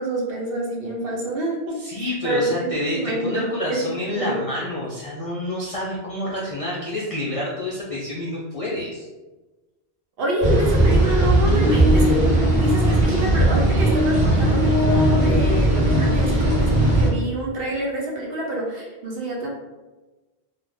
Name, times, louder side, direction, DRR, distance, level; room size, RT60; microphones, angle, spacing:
voice 1, 0.0-4.4 10.2-19.5, right 1 dB, 65° right, -2 dB, 0.8 m, -27 dB
voice 2, 1.7-9.1, left 1 dB, 55° left, -6 dB, 0.4 m, -28 dB
sound 1, 10.4-17.1, right 1 dB, 30° right, 0.7 m, -18 dB
2.5 x 2.0 x 3.3 m, 1.2 s
omnidirectional pair, 1.1 m